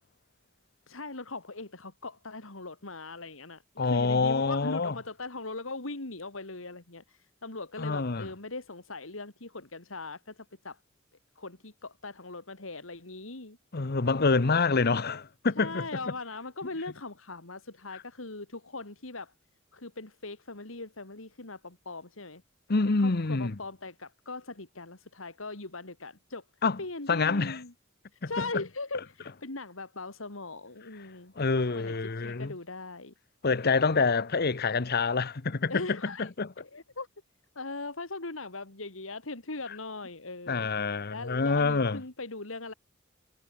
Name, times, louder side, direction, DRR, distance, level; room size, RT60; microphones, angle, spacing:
voice 1, 0.9-10.8 11.4-13.6 15.6-19.3 19.7-22.4 23.0-26.4 26.8-27.7 28.1-31.3 31.7-33.1 35.7-36.3 36.6-37.1 37.5-40.7 41.1-42.7, left 3 dB, 85° left, 2.8 m, -40 dB
voice 2, 3.8-4.9 7.8-8.3 13.7-15.8 22.7-23.6 26.6-26.8 27.1-27.6 28.2-28.4 31.4-32.5 33.4-36.5 40.5-42.0, left 4 dB, 50° left, 0.9 m, -27 dB
head